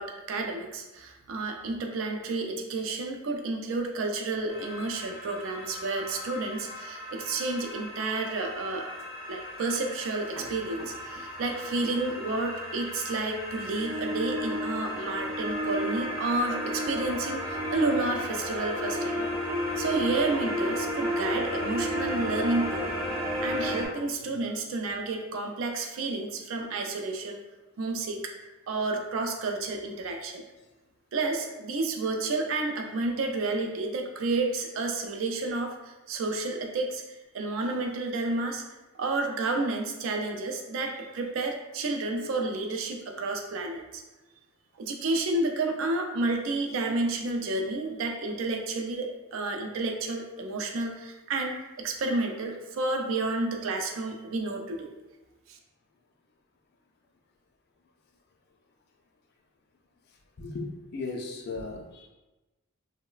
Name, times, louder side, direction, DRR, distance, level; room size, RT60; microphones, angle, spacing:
voice 1, 0.0-8.9 9.3-19.2 19.8-22.9 23.4-27.4 27.8-28.2 28.7-30.4 31.1-35.7 36.1-38.6 38.9-44.0 44.8-54.9 55.5-55.6, right 3 dB, 65° right, 3 dB, 0.4 m, -30 dB
sound 1, 4.5-23.9, equal, 90° right, 1.0 m, -33 dB
voice 2, 60.4-62.1, left 3 dB, 50° left, 1 dB, 0.4 m, -36 dB
2.9 x 2.0 x 2.3 m, 1.1 s
head